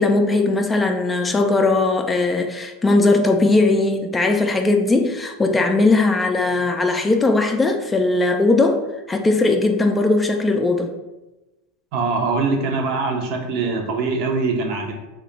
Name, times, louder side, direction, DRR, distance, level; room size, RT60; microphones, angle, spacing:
voice 1, 0.0-10.9, left 2 dB, 15° left, 4 dB, 0.3 m, -19 dB
voice 2, 11.9-14.9, right 3 dB, 55° right, 3 dB, 0.6 m, -22 dB
2.8 x 2.2 x 3.9 m, 1.0 s
hypercardioid pair, 85°, 0 cm